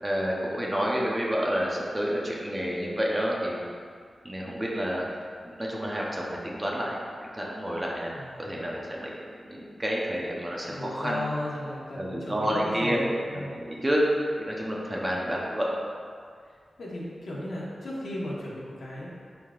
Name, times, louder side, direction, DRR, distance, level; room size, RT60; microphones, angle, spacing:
voice 1, 0.0-3.6 4.2-5.1 5.6-7.0 7.3-9.1 9.5-11.2 12.0-13.1 13.3-14.0 14.4-15.8, equal, 15° right, -4 dB, 0.8 m, -29 dB
voice 2, 10.7-13.6 16.8-19.1, left 1 dB, 65° left, -6 dB, 1.5 m, -35 dB
11.0 x 3.8 x 2.5 m, 2.1 s
wide cardioid pair, 160°, 0 cm